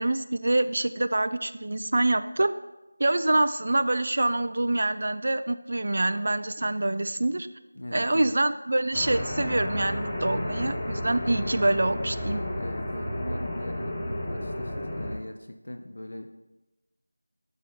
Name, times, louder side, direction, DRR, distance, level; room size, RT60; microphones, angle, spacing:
voice 1, 0.0-2.5 3.0-7.5 7.9-12.4, right 2 dB, 50° right, 12 dB, 0.3 m, -25 dB
voice 2, 7.7-8.3 12.4-16.3, left 1 dB, 65° left, 6 dB, 0.6 m, -40 dB
sound 1, 8.9-15.1, left 1 dB, 15° left, 0.8 m, -32 dB
6.4 x 3.9 x 5.1 m, 1.0 s
figure-of-eight pair, 170°, 0 cm